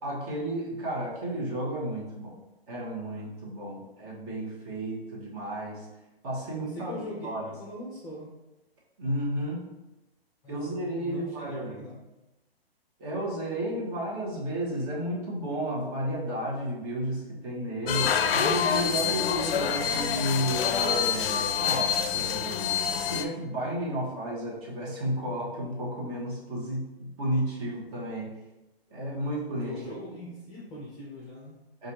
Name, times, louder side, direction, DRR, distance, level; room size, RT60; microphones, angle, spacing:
voice 1, 0.0-2.4 2.7-5.9 6.2-7.5 9.0-9.7 10.5-11.8 13.0-22.8 23.1-28.3 28.9-29.7 31.8-31.9, right 1 dB, 35° right, -4 dB, 1.2 m, -32 dB
voice 2, 6.6-7.3 7.6-8.3 10.4-12.0 29.6-31.6, left 1 dB, 10° left, -5 dB, 0.6 m, -41 dB
sound 1, 17.9-23.2, left 8 dB, 65° left, 0.5 m, -27 dB
4.8 x 2.5 x 2.9 m, 1.0 s
hypercardioid pair, 140°, 31 cm